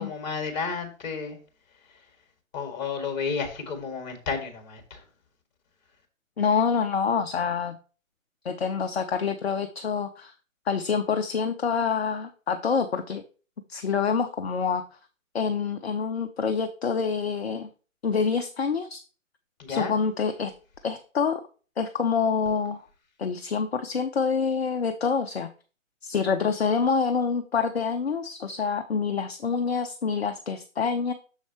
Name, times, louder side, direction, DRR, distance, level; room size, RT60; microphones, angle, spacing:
voice 1, 0.0-1.4 1.9-2.0 2.5-5.0 19.6-19.9, left 5 dB, 30° left, 5 dB, 1.7 m, -32 dB
voice 2, 6.4-7.8 8.4-10.3 10.7-13.2 13.7-14.8 15.3-17.7 18.0-19.0 19.7-20.5 20.8-21.4 21.8-22.8 23.2-25.5 26.0-31.1, left 6 dB, 50° left, 7 dB, 0.6 m, -26 dB
7.2 x 6.4 x 2.9 m, 0.37 s
figure-of-eight pair, 140°, 41 cm